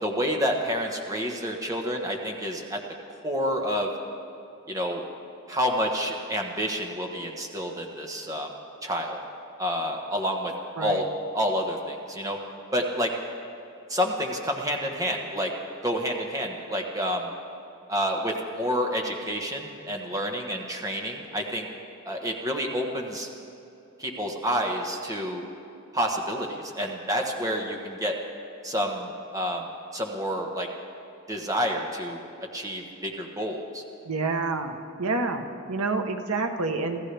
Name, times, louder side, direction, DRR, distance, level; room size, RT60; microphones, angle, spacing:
voice 1, 0.0-2.8 3.2-3.9 4.7-5.0 5.5-8.5 8.8-9.2 9.6-10.5 10.8-11.0 11.3-12.4 12.7-13.1 13.9-15.5 15.8-17.3 17.9-21.7 22.0-23.3 24.0-25.4 25.9-28.1 28.6-29.7 29.9-30.7 31.3-32.2 32.5-33.8, equal, 15° right, 1 dB, 1.3 m, -29 dB
voice 2, 34.0-37.0, right 3 dB, 90° right, 5 dB, 1.1 m, -28 dB
27.5 x 15.0 x 3.4 m, 2.8 s
head